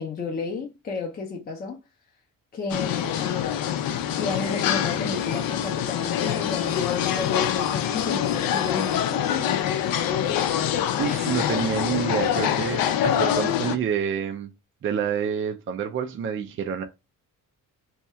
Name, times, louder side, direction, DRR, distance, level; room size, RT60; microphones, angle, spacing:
voice 1, 0.0-1.8 2.5-3.4 4.2-9.3, left 4 dB, 30° left, 0.5 m, -32 dB
sound 1, 2.7-13.8, left 10 dB, 85° left, 0.5 m, -25 dB
voice 2, 11.0-14.5 14.8-16.8, right 8 dB, 40° right, 0.4 m, -28 dB
2.8 x 2.3 x 4.1 m
cardioid pair, 180°, 34 cm